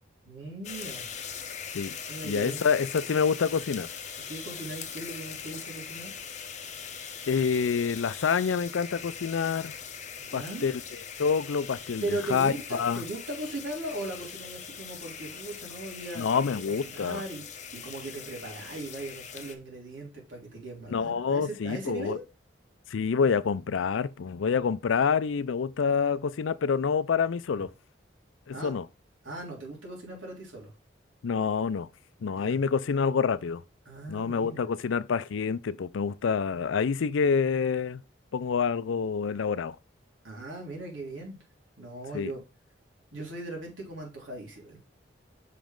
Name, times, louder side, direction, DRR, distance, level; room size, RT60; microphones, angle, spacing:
voice 1, 0.2-1.1 2.1-2.7 4.3-6.2 10.2-10.7 12.0-17.4 17.7-22.2 27.6-27.7 28.5-28.7 29.2-30.7 32.3-32.6 33.8-34.7 40.2-41.4 41.8-42.4 43.1-44.8, right 2 dB, 90° right, 3.1 m, -38 dB
sound 1, 0.6-19.5, left 7 dB, 35° left, 0.8 m, -41 dB
voice 2, 2.2-3.9 7.3-9.7 10.3-10.7 11.2-13.0 16.2-17.2 20.9-22.2 22.9-27.7 28.5-28.8 31.2-31.9 32.2-33.6 34.1-38.0 38.3-39.8 42.1-42.3, left 6 dB, 85° left, 0.4 m, -27 dB
5.9 x 5.2 x 3.7 m
head